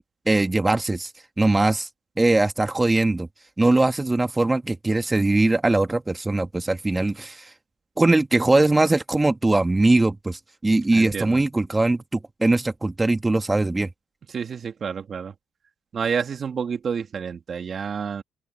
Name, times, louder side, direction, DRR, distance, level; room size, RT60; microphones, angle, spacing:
voice 1, 0.3-1.1 1.4-1.9 2.2-3.3 3.6-7.5 8.0-13.9, right 2 dB, 20° right, 1.5 m, -21 dB
voice 2, 10.9-11.4 14.3-15.3 15.9-18.2, right 6 dB, 55° right, 2.1 m, -29 dB
supercardioid pair, 65°, 0 cm